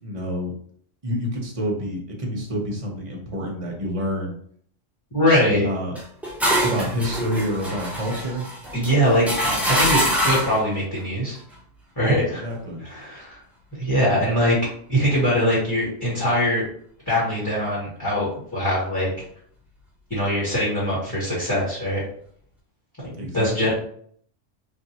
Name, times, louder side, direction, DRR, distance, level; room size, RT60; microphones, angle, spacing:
voice 1, 0.0-0.5 1.0-4.3 5.5-6.0 6.6-8.5 12.3-12.8 23.2-23.7, equal, 35° right, -1 dB, 0.7 m, -28 dB
voice 2, 5.1-5.7 8.7-11.4 11.9-12.4 12.8-13.4 13.8-14.6 14.9-16.6 17.1-19.1 20.1-22.0 23.3-23.7, equal, 15° left, -9 dB, 1.3 m, -22 dB
sound 1, 5.9-10.6, equal, ahead, 0.4 m, -24 dB
3.4 x 2.6 x 2.8 m, 0.62 s
omnidirectional pair, 1.3 m